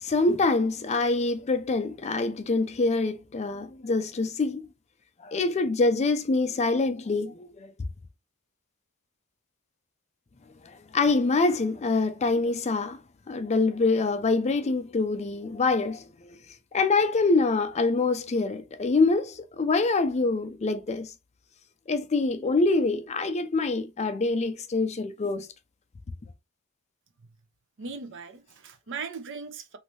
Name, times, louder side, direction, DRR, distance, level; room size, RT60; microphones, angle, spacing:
voice 1, 0.0-4.7 5.2-7.7 10.6-13.0 13.3-16.1 16.7-21.1 21.9-25.5, left 3 dB, 30° left, 0.4 m, -25 dB
voice 2, 27.8-29.8, right 5 dB, 60° right, 0.6 m, -38 dB
3.1 x 2.7 x 3.1 m
head